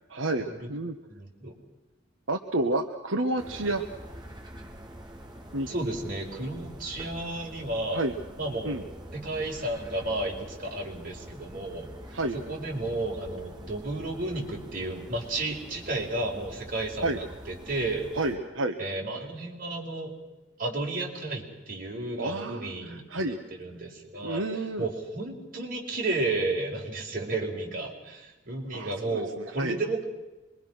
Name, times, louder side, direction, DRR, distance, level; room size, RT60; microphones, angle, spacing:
voice 1, 0.0-0.9 2.3-3.8 5.5-5.7 7.9-8.1 8.6-8.8 12.1-12.4 17.0-17.2 18.1-18.8 22.2-23.4 24.2-24.9 28.7-29.8, right 2 dB, 80° right, 4 dB, 1.4 m, -30 dB
voice 2, 1.1-1.5 5.7-8.0 8.4-8.8 9.1-11.9 12.3-18.1 18.8-20.1 20.6-24.4 24.8-30.0, right 2 dB, 45° right, -1 dB, 5.0 m, -32 dB
sound 1, 3.4-18.4, equal, 20° right, 2.8 m, -45 dB
26.0 x 23.0 x 6.3 m, 1.1 s
head